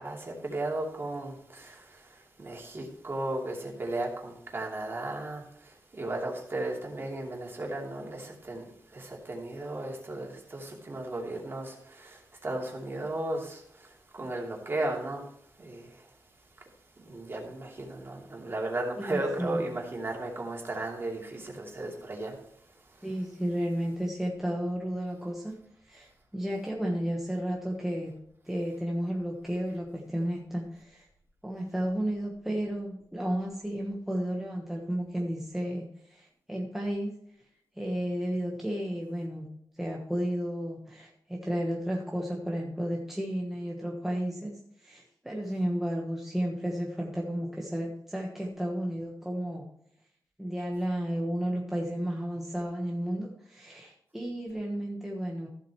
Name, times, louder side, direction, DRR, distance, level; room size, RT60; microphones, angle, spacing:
voice 1, 0.0-15.2 15.6-16.1 17.0-22.4 22.9-23.1, right 2 dB, 35° right, 2.8 m, -35 dB
voice 2, 19.0-19.7 23.0-25.6 25.9-28.2 28.4-31.1 31.4-37.1 37.8-39.5 39.8-49.6 50.4-55.5, equal, 5° right, 1.2 m, -33 dB
15.0 x 7.8 x 3.1 m
wide cardioid pair, 170°, 7 cm